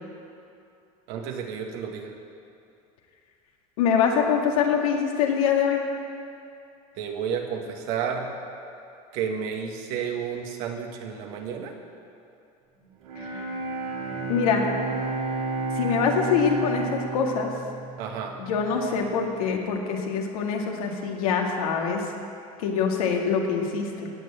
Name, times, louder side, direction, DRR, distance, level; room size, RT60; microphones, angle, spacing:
voice 1, 1.1-2.1 7.0-8.3 9.1-11.7 18.0-18.3, right 7 dB, 70° right, 2 dB, 2.0 m, -31 dB
voice 2, 3.8-5.8 13.3-13.4 14.3-14.7 15.8-17.5 18.4-22.0 22.6-24.1, left 6 dB, 85° left, 1 dB, 2.1 m, -24 dB
Bowed string instrument, 13.0-19.0, right 3 dB, 85° right, 3.7 m, -31 dB
17.0 x 6.7 x 8.7 m, 2.6 s
supercardioid pair, 110°, 18 cm